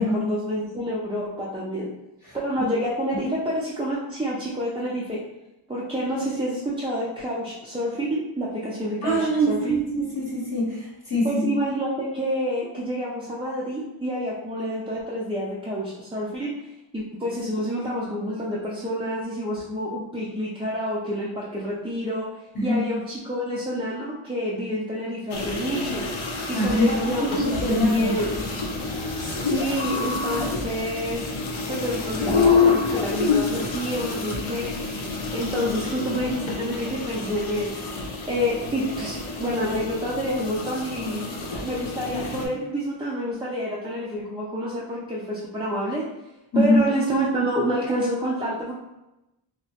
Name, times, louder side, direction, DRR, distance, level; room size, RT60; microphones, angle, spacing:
voice 1, 0.0-1.9 2.3-5.2 5.7-9.8 11.2-22.3 22.6-26.0 26.5-28.7 29.2-31.3 31.7-34.9 35.3-46.0 46.5-48.7, equal, 10° right, -6 dB, 0.4 m, -28 dB
voice 2, 9.0-11.4 22.5-22.8 26.4-28.1 46.5-46.8, equal, 45° left, -8 dB, 0.9 m, -23 dB
sound 1, 25.3-42.5, left 4 dB, 75° left, 0.6 m, -28 dB
2.8 x 2.1 x 2.8 m, 0.96 s
wide cardioid pair, 55°, 47 cm